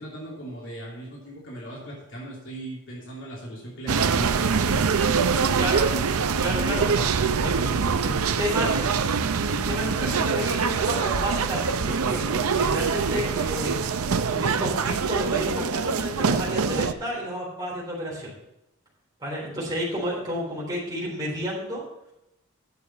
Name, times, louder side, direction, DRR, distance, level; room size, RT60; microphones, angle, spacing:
voice 1, 0.0-4.9, right 1 dB, 55° left, -4 dB, 2.9 m, -38 dB
sound 1, 3.9-16.9, right 5 dB, 80° right, 0.6 m, -24 dB
voice 2, 5.5-5.9 6.4-6.9 7.4-8.9 9.5-13.8 14.3-18.3 19.2-21.8, equal, 20° right, -6 dB, 3.8 m, -31 dB
9.8 x 6.9 x 5.6 m, 0.86 s
head